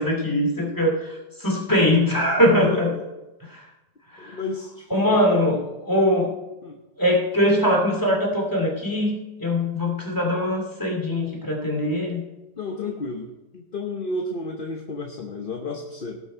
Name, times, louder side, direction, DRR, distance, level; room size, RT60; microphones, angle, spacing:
voice 1, 0.0-2.9 3.5-3.7 4.1-4.4 4.9-6.3 7.0-12.2, left 1 dB, 10° left, 0 dB, 2.5 m, -22 dB
voice 2, 2.6-3.0 4.2-5.5 6.6-6.8 12.6-16.2, left 3 dB, 40° left, 2 dB, 1.0 m, -32 dB
18.0 x 6.4 x 4.5 m, 1.0 s
omnidirectional pair, 1.9 m